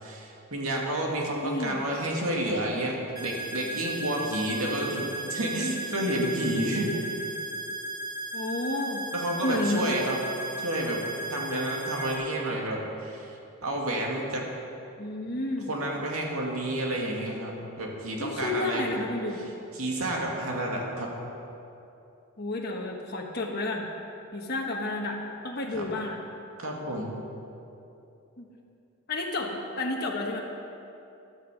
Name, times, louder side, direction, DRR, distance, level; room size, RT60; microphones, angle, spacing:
voice 1, 0.0-6.9 9.1-10.2 10.6-11.0 11.3-13.4 13.6-14.5 15.7-18.9 19.7-21.1 25.7-25.8 26.6-27.2, right 1 dB, 80° right, -1 dB, 2.3 m, -30 dB
voice 2, 1.4-1.8 8.3-9.0 9.4-10.0 15.0-15.7 18.2-19.4 22.4-23.9 24.3-26.2 28.4-28.5 29.1-30.4, left 2 dB, 45° left, -1 dB, 1.3 m, -31 dB
sound 1, 3.2-12.2, right 1 dB, 40° right, 2.2 m, -36 dB
14.5 x 12.5 x 5.1 m, 2.8 s
head